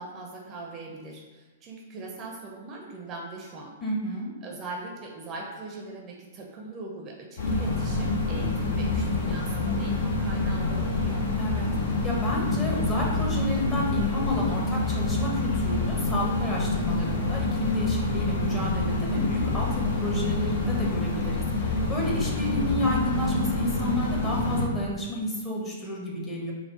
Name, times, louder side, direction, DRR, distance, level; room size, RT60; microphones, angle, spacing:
voice 1, 0.0-3.8 4.4-11.3, right 2 dB, 30° right, 0 dB, 0.6 m, -40 dB
voice 2, 3.8-4.3 11.4-26.5, left 1 dB, 20° left, -3 dB, 1.0 m, -31 dB
sound 1, 7.4-24.7, left 2 dB, 60° left, 0.7 m, -27 dB
4.3 x 2.0 x 4.0 m, 1.2 s
figure-of-eight pair, 110°, 0 cm